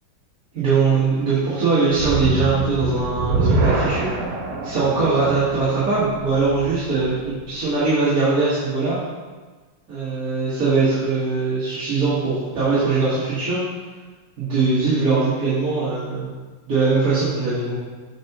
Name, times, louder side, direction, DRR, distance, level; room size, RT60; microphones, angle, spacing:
voice 1, 0.5-4.1 4.6-9.0 9.9-13.6 14.4-16.3 16.6-17.7, right 4 dB, 45° right, -12 dB, 2.1 m, -21 dB
sound 1, 1.9-7.2, right 3 dB, 75° right, 1.7 m, -24 dB
7.4 x 5.8 x 3.0 m, 1.4 s
omnidirectional pair, 2.4 m